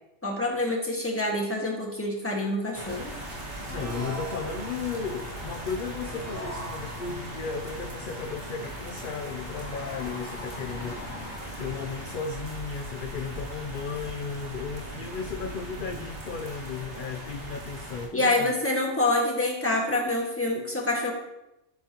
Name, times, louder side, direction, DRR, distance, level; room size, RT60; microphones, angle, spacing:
voice 1, 0.2-3.1 18.1-21.1, left 2 dB, 10° left, -1 dB, 1.8 m, -26 dB
sound 1, 2.7-18.1, right 1 dB, 60° right, 2.1 m, -39 dB
sound 2, 3.6-5.0 6.1-7.4, right 2 dB, 15° right, 0.8 m, -40 dB
voice 2, 3.7-18.6, left 5 dB, 50° left, 6 dB, 0.7 m, -35 dB
sound 3, 4.3-12.2, left 2 dB, 80° left, 1.9 m, -43 dB
15.0 x 7.2 x 3.0 m, 0.90 s
omnidirectional pair, 1.3 m